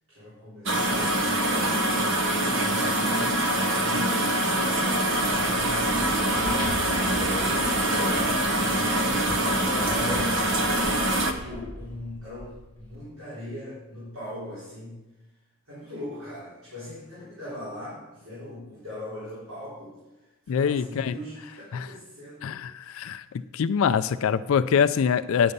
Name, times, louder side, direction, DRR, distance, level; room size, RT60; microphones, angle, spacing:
voice 1, 0.1-1.3 2.2-10.4 11.3-15.0 15.7-22.6, left 1 dB, 75° right, -10 dB, 3.8 m, -40 dB
sound 1, 0.7-11.3, right 1 dB, 55° right, 0.8 m, -24 dB
sound 2, 5.0-13.0, left 1 dB, 25° right, 2.6 m, -38 dB
voice 2, 20.5-21.1 21.7-21.9 22.4-23.2 23.5-25.5, left 7 dB, 70° left, 11 dB, 0.3 m, -24 dB
9.7 x 6.8 x 5.3 m, 1.0 s
head